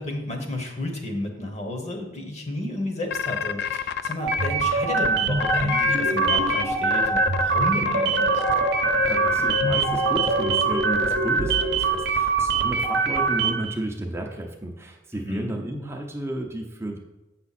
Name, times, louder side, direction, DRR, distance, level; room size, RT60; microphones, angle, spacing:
voice 1, 0.0-8.4 15.1-15.5, left 1 dB, 35° left, 3 dB, 1.2 m, -32 dB
sound 1, 3.1-4.5 5.0-5.1 5.4-6.6 6.9-12.1, left 7 dB, 60° left, 0.4 m, -27 dB
sound 2, 4.2-13.7, right 4 dB, 60° right, 0.8 m, -23 dB
voice 2, 9.0-17.0, right 1 dB, 15° right, 1 dB, 0.6 m, -32 dB
8.1 x 5.9 x 4.2 m, 1.0 s
head